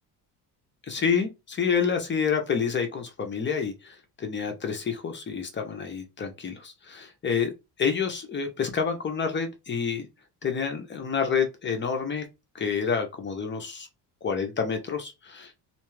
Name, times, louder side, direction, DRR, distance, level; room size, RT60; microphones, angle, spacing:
voice 1, 0.9-7.5 7.8-10.1 10.4-12.2 12.5-13.9 14.2-15.5, left 6 dB, 25° left, 0.6 m, -28 dB
2.5 x 2.3 x 3.1 m
cardioid pair, 125°, 42 cm